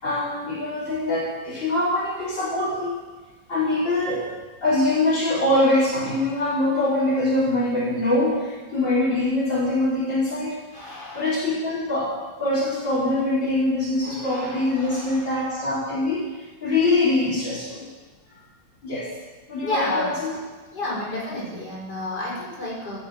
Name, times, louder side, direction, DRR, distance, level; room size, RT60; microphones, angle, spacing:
voice 1, 0.0-3.0 3.5-4.3 4.6-10.6 11.1-12.1 12.4-16.2 16.6-17.9 18.8-19.1 19.5-20.3, left 2 dB, 75° left, -10 dB, 5.3 m, -23 dB
voice 2, 10.7-11.4 14.0-15.4 18.3-18.5 19.6-20.2 20.7-23.0, left 2 dB, 60° left, -6 dB, 6.3 m, -31 dB
14.5 x 10.0 x 8.8 m, 1.3 s
omnidirectional pair, 2.0 m